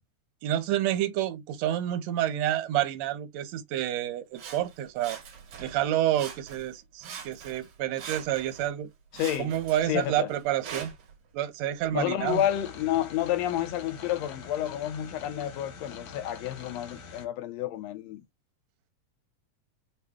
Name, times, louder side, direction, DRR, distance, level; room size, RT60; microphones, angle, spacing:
voice 1, 0.4-5.2 5.6-8.9 9.4-10.9 11.3-12.4, right 12 dB, 75° right, 1.9 m, -29 dB
Sawing, 4.3-5.8 6.1-6.7 7.0-8.7 9.1-11.1 11.8-11.9, right 7 dB, 60° right, 1.7 m, -43 dB
voice 2, 9.1-9.5 9.9-10.3 11.9-18.2, left 12 dB, 75° left, 1.7 m, -30 dB
sound 1, 12.2-17.3, left 5 dB, 90° left, 1.0 m, -45 dB
5.6 x 2.2 x 3.5 m
omnidirectional pair, 3.3 m